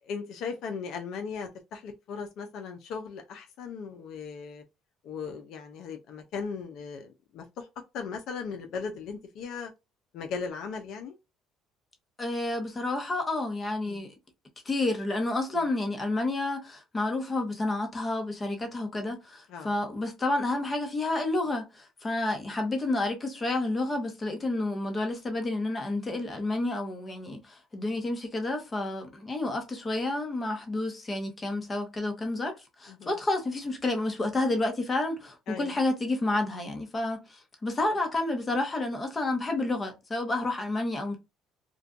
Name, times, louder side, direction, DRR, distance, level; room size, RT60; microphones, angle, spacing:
voice 1, 0.1-4.6 5.0-7.7 7.9-9.7 10.1-11.2 13.9-14.1 15.5-15.6 19.5-19.7 32.9-33.1 35.5-35.7, left 5 dB, 70° left, 0.4 m, -37 dB
voice 2, 12.2-14.2 14.6-41.2, left 2 dB, 25° left, 0.8 m, -30 dB
2.5 x 2.2 x 2.4 m
supercardioid pair, 90°, 0 cm